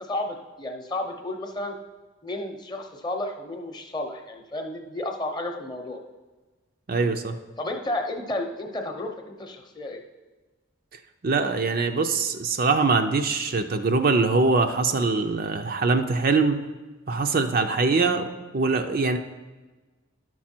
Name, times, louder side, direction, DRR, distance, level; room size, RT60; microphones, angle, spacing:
voice 1, 0.0-1.7 2.2-6.0 7.6-10.0, left 1 dB, 20° left, 3 dB, 0.8 m, -32 dB
voice 2, 6.9-7.4 11.2-16.6 17.1-19.2, right 3 dB, 45° right, 6 dB, 0.5 m, -23 dB
11.0 x 6.1 x 4.4 m, 1.2 s
head